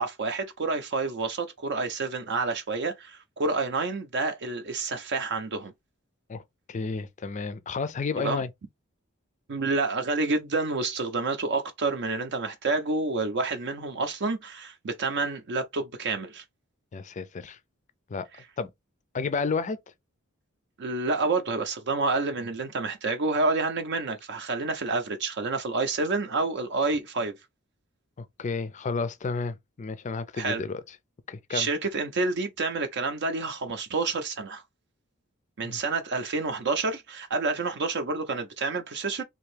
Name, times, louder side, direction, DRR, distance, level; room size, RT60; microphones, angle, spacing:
voice 1, 0.0-5.7 8.2-8.4 9.5-16.4 20.8-27.3 30.4-30.6 31.5-34.6 35.6-39.2, right 3 dB, 60° right, 0.5 m, -28 dB
voice 2, 6.7-8.5 16.9-17.6 18.1-18.3 18.6-18.7 19.1-19.8 28.2-30.8 31.3-31.7 35.6-35.8, left 4 dB, 35° left, 0.4 m, -31 dB
3.4 x 2.6 x 3.2 m
head